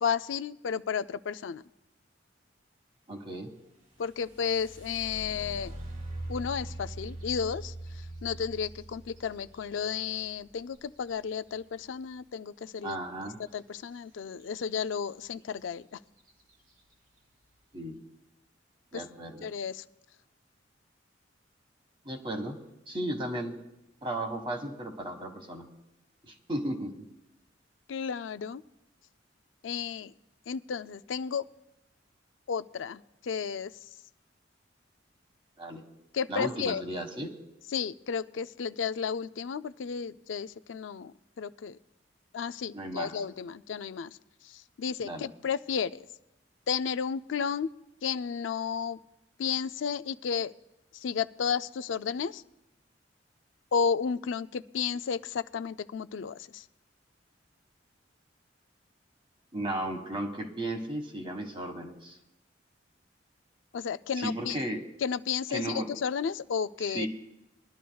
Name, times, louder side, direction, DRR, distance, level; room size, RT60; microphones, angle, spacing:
voice 1, 0.0-1.6 4.0-5.7 6.3-7.7 8.2-13.0 13.5-16.0 18.9-19.0 19.4-19.8 27.9-28.6 29.6-30.1 30.5-31.5 32.5-33.7 36.1-36.8 37.7-41.1 41.4-41.8 42.3-44.2 44.4-46.0 46.7-47.7 48.0-49.0 49.4-50.5 50.9-52.4 53.7-56.6 63.7-64.6 65.0-67.1, left 6 dB, 85° left, 12 dB, 0.4 m, -32 dB
voice 2, 3.1-3.5 12.8-13.4 17.7-18.0 18.9-19.5 22.0-22.6 22.9-23.6 24.0-25.7 26.2-27.0 35.6-35.8 36.3-37.4 42.7-43.2 45.0-45.3 59.5-62.2 64.2-64.8 65.5-65.9 66.8-67.1, right 1 dB, 30° right, 4 dB, 1.5 m, -35 dB
sound 1, 3.9-11.7 13.8-14.0 14.4-15.0 15.6-15.7 16.2-16.5, right 1 dB, 45° right, 2.4 m, -43 dB
22.0 x 12.0 x 2.3 m, 0.94 s
head